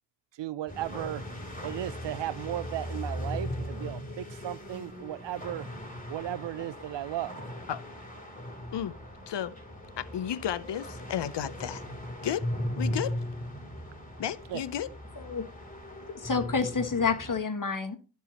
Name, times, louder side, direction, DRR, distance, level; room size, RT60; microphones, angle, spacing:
voice 1, 0.3-1.2 1.6-5.7 6.1-7.4 14.5-14.6, right 13 dB, 80° right, 0.5 m, -35 dB
sound 1, 0.7-17.4, left 1 dB, 20° left, 3.2 m, -38 dB
voice 2, 10.0-11.8 12.2-12.4 12.8-13.1 14.2-14.9, left 10 dB, 75° left, 0.7 m, -32 dB
voice 3, 16.1-18.0, left 5 dB, 50° left, 1.5 m, -29 dB
13.0 x 4.6 x 2.9 m
cardioid pair, 45°, 42 cm